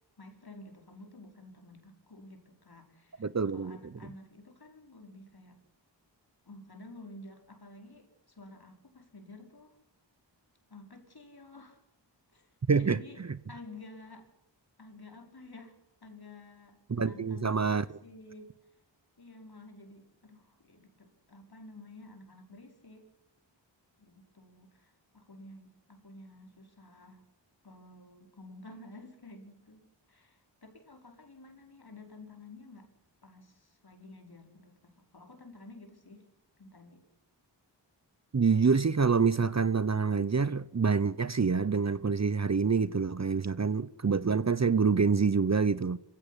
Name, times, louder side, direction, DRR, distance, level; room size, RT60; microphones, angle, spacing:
voice 1, 0.2-5.6 6.4-9.8 10.7-11.8 12.3-13.2 13.5-14.3 14.8-18.5 19.2-23.1 24.0-27.3 27.6-32.9 33.2-36.3 36.6-37.0, left 2 dB, 55° left, 5.1 m, -51 dB
voice 2, 3.2-3.8 12.7-13.0 16.9-17.8 38.3-46.0, right 5 dB, 35° right, 0.8 m, -26 dB
25.5 x 16.0 x 10.0 m
wide cardioid pair, 65°, 44 cm